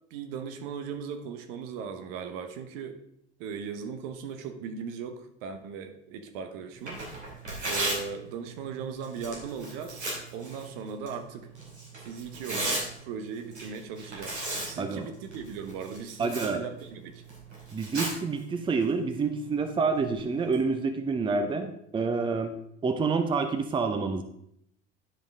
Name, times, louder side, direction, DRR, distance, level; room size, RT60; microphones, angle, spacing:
voice 1, 0.1-3.0 3.4-7.0 7.7-11.5 12.0-17.2, right 6 dB, 55° right, 7 dB, 1.0 m, -38 dB
Tearing, 6.7-20.6, right 1 dB, 80° right, 2.6 m, -38 dB
voice 2, 14.8-15.1 16.2-16.6 17.7-22.6 22.8-24.2, right 4 dB, 15° right, 8 dB, 0.7 m, -28 dB
10.0 x 5.2 x 3.6 m, 0.75 s
figure-of-eight pair, 70°, 33 cm